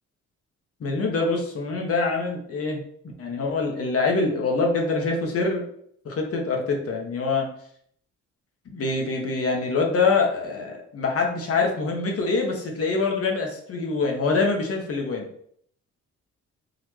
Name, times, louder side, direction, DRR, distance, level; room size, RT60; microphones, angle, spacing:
voice 1, 0.8-2.8 3.2-5.7 6.0-7.5 8.7-15.3, left 3 dB, 50° left, 1 dB, 1.1 m, -25 dB
4.0 x 2.8 x 3.2 m, 0.64 s
cardioid pair, 90°, 30 cm